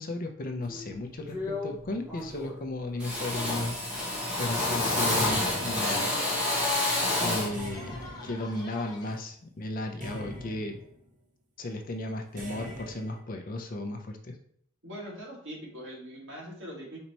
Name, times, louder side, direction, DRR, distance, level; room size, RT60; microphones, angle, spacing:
voice 1, 0.0-4.1 4.4-6.2 7.2-10.8 11.6-14.4, left 2 dB, 40° left, 5 dB, 0.5 m, -35 dB
Drill, 0.7-0.9 1.3-1.8 2.1-2.6 3.0-7.6, left 2 dB, 5° right, 1.0 m, -29 dB
sound 1, 3.2-9.1, left 2 dB, 20° left, 0.9 m, -46 dB
sound 2, 5.2-6.5 7.5-9.2 10.0-11.1 12.4-13.2, equal, 35° right, 0.9 m, -44 dB
voice 2, 14.8-17.0, equal, 60° right, -3 dB, 1.7 m, -42 dB
4.4 x 2.9 x 4.0 m, 0.67 s
head